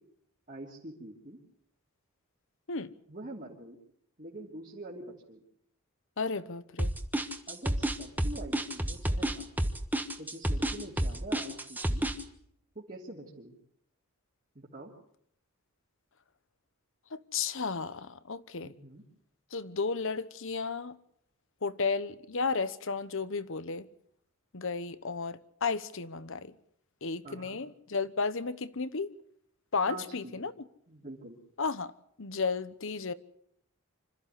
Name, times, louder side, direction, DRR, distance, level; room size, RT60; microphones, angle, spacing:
voice 1, 0.5-1.4 3.1-3.8 4.2-5.4 7.5-9.5 10.2-12.1 12.7-13.6 14.5-14.9 18.6-19.0 27.2-27.6 29.9-30.5 30.9-31.4, right 2 dB, 40° right, 3.1 m, -45 dB
voice 2, 6.2-6.9 17.1-18.7 19.5-21.0 21.6-23.9 24.5-26.5 27.0-29.1 29.7-30.5 31.6-31.9 32.2-33.1, left 4 dB, 60° left, 1.0 m, -33 dB
sound 1, 6.8-12.2, right 1 dB, 10° right, 1.3 m, -29 dB
26.0 x 14.0 x 8.2 m
head